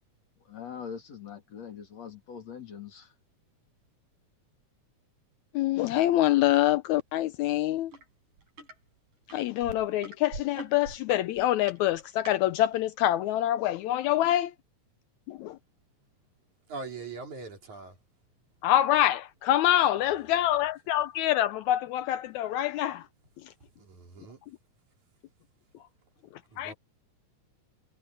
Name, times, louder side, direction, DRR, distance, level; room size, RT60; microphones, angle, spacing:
voice 1, 0.4-3.1 25.8-25.9, left 7 dB, 55° left, 4.3 m, -43 dB
voice 2, 5.5-7.9 9.3-14.5 15.3-15.6 18.6-23.1 26.6-26.7, left 13 dB, 75° left, 1.9 m, -25 dB
sound 1, 7.9-8.1 8.4-8.8 9.3-12.4 13.1-13.2, right 3 dB, 85° right, 8.6 m, -43 dB
voice 3, 16.7-17.9 23.8-24.4 26.5-26.7, right 4 dB, 70° right, 5.2 m, -41 dB
omnidirectional pair, 3.5 m